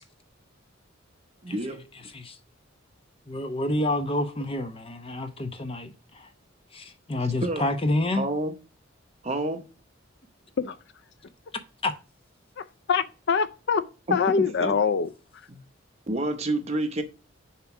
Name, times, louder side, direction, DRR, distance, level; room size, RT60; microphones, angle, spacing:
voice 1, 1.4-1.8 7.4-7.7 8.1-8.5 9.2-9.7 14.1-14.8 15.5-15.6 16.1-17.0, right 2 dB, 35° right, 0.8 m, -29 dB
voice 2, 3.3-6.3 6.7-8.3 11.8-11.9, left 1 dB, 30° left, 0.8 m, -28 dB
voice 3, 12.9-13.8 14.1-15.1, left 6 dB, 60° left, 0.4 m, -24 dB
7.0 x 3.0 x 5.7 m
head